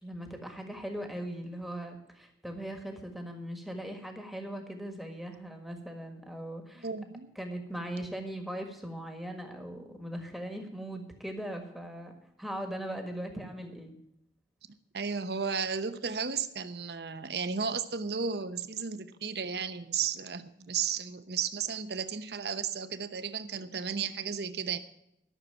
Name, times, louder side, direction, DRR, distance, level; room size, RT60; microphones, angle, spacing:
voice 1, 0.0-6.9 7.3-12.1 12.4-13.9, right 1 dB, ahead, 4 dB, 1.5 m, -39 dB
voice 2, 6.8-7.3 14.9-24.8, right 6 dB, 65° right, 11 dB, 0.9 m, -34 dB
13.0 x 6.6 x 9.0 m, 0.80 s
head